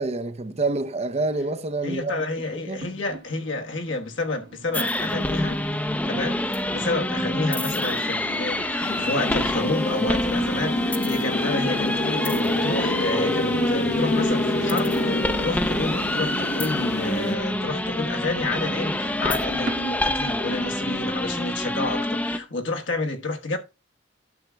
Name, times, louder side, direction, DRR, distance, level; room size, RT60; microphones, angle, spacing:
voice 1, 0.0-2.2 2.7-2.8, right 3 dB, 35° right, 0.6 m, -27 dB
voice 2, 1.8-23.6, left 2 dB, 75° left, 1.3 m, -30 dB
sound 1, 2.8-20.3, right 2 dB, 55° right, 1.2 m, -43 dB
sound 2, 4.7-22.4, left 1 dB, 10° left, 0.6 m, -26 dB
sound 3, 8.8-17.3, left 1 dB, 60° left, 0.9 m, -28 dB
12.0 x 7.2 x 2.3 m
head